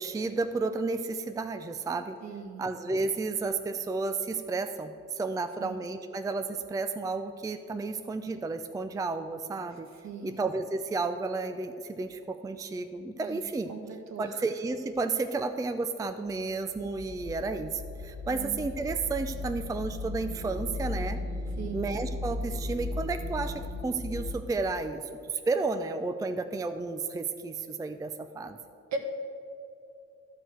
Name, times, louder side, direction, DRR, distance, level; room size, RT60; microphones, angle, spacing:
voice 1, 0.0-2.2 2.6-9.9 10.2-13.7 14.2-21.2 21.7-25.0 25.3-28.6, right 3 dB, 10° right, 9 dB, 0.4 m, -32 dB
voice 2, 2.2-2.6 5.6-5.8 10.0-10.4 13.2-13.4 13.7-14.4 18.3-18.6 21.6-21.8 28.9-29.0, right 4 dB, 65° right, 4 dB, 1.5 m, -39 dB
sound 1, 16.6-24.3, left 2 dB, 5° left, 1.9 m, -36 dB
11.5 x 4.7 x 7.7 m, 2.6 s
cardioid pair, 90°, 30 cm